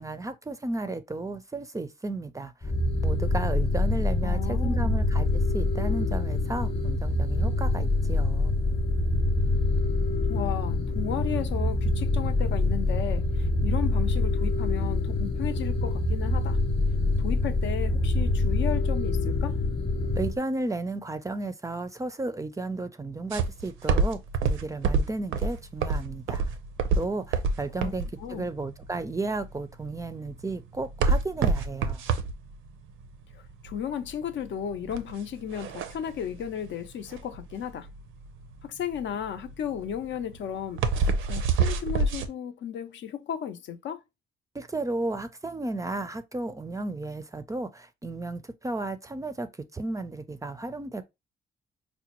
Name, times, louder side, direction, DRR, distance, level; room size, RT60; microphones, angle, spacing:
voice 1, 0.0-2.7 3.0-8.5 20.2-26.4 27.0-32.0 44.5-51.0, right 2 dB, 15° right, 0.4 m, -33 dB
sound 1, 2.6-20.4, left 2 dB, 30° left, 0.8 m, -25 dB
voice 2, 4.2-4.9 10.3-16.6 17.2-19.6 27.8-27.9 28.2-28.5 33.3-37.9 38.6-44.0, left 9 dB, 70° left, 0.6 m, -34 dB
sound 2, 23.3-42.3, right 4 dB, 85° right, 0.5 m, -27 dB
4.9 x 2.1 x 2.9 m
cardioid pair, 90°, 20 cm